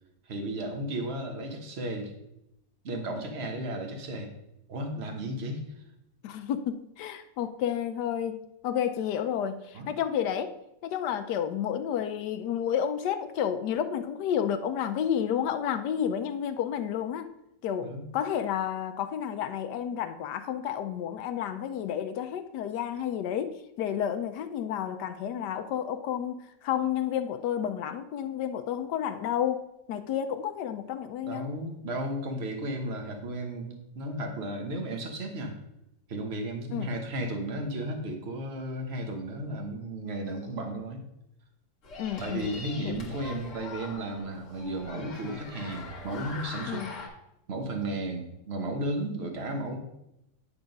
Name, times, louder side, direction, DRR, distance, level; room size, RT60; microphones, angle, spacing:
voice 1, 0.3-2.1 2.8-4.3 4.7-5.6 9.7-9.9 17.8-18.1 31.3-35.6 36.1-41.0 42.2-46.8 47.5-49.8, right 1 dB, 40° right, 3 dB, 1.2 m, -34 dB
voice 2, 6.2-10.5 10.8-17.3 17.6-31.5 36.7-36.9 42.0-42.5 42.8-43.0 46.7-47.0, left 9 dB, 75° left, 10 dB, 1.1 m, -31 dB
sound 1, 41.8-47.1, left 3 dB, 45° left, 1.5 m, -42 dB
9.8 x 3.5 x 5.3 m, 0.84 s
omnidirectional pair, 1.9 m